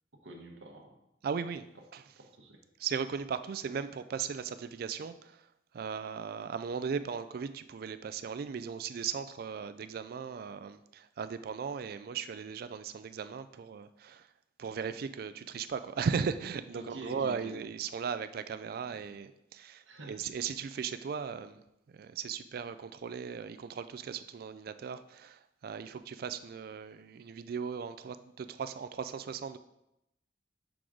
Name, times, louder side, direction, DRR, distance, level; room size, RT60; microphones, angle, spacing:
voice 1, 0.1-1.0 2.2-2.6 16.7-17.7 19.9-20.2, right 1 dB, 90° right, 2 dB, 1.0 m, -47 dB
voice 2, 1.2-1.6 1.9-2.0 2.8-5.4 5.7-14.2 14.6-21.6 21.9-29.6, right 6 dB, 55° right, 12 dB, 0.3 m, -37 dB
6.0 x 3.8 x 4.8 m, 0.86 s
head